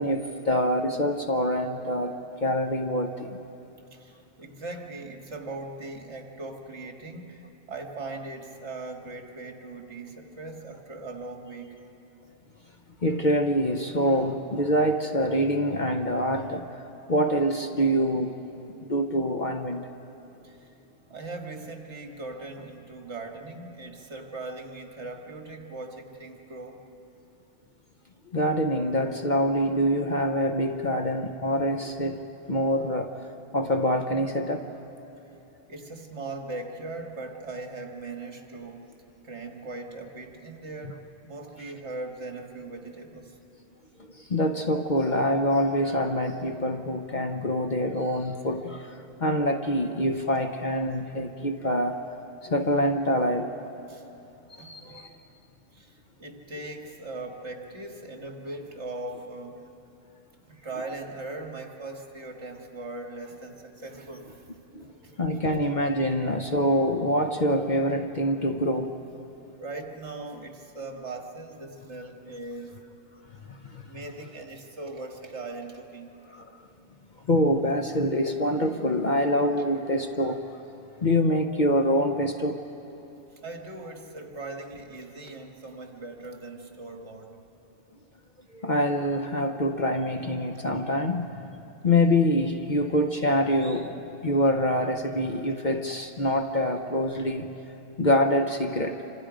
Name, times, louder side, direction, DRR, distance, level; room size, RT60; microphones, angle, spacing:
voice 1, 0.0-3.4 13.0-16.7 17.1-18.4 18.8-19.9 28.3-32.2 32.5-33.2 33.5-34.6 44.2-52.0 52.4-53.5 54.5-55.1 64.7-64.8 65.2-68.9 73.5-73.8 76.3-76.5 77.3-80.4 81.0-82.7 88.5-91.6 91.8-97.5 98.0-99.0, equal, 40° left, 5 dB, 0.9 m, -25 dB
voice 2, 3.9-11.8 20.4-20.7 21.1-26.8 35.7-38.9 39.2-43.4 53.9-54.0 54.6-55.0 55.7-59.7 60.4-64.5 64.8-65.5 66.1-66.2 69.6-72.8 73.8-76.2 83.4-87.3, right 2 dB, 60° right, 3 dB, 2.1 m, -39 dB
27.0 x 26.0 x 5.1 m, 2.9 s
omnidirectional pair, 1.3 m